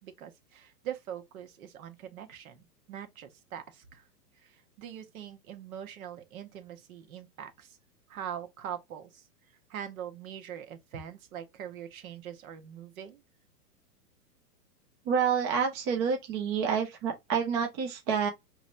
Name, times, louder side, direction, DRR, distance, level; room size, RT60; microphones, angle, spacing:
voice 1, 0.0-4.1 4.3-7.8 8.1-9.3 9.7-13.2, right 9 dB, 55° right, 1.2 m, -42 dB
voice 2, 15.1-18.3, right 6 dB, 20° right, 0.4 m, -28 dB
4.8 x 3.1 x 2.5 m
hypercardioid pair, 140°, 48 cm